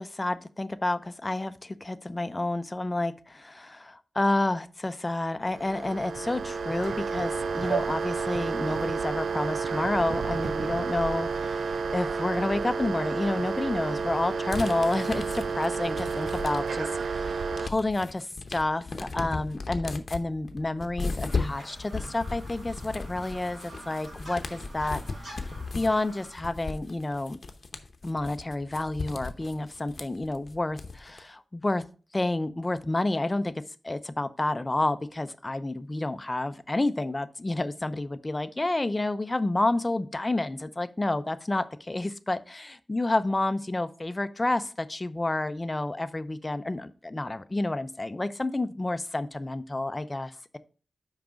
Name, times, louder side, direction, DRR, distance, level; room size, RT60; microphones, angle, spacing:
voice 1, 0.0-25.0 25.3-25.4 25.7-27.4 28.0-31.8 32.1-33.5 33.8-50.6, left 2 dB, 20° left, 11 dB, 0.5 m, -30 dB
sound 1, 5.5-17.7, right 5 dB, 80° right, 0.3 m, -30 dB
sound 2, 14.5-16.9 17.3-31.2, left 3 dB, 50° left, 0.8 m, -36 dB
sound 3, 21.3-26.4, right 1 dB, 45° right, 3.9 m, -46 dB
5.9 x 4.9 x 5.0 m, 0.37 s
wide cardioid pair, 120°, 0 cm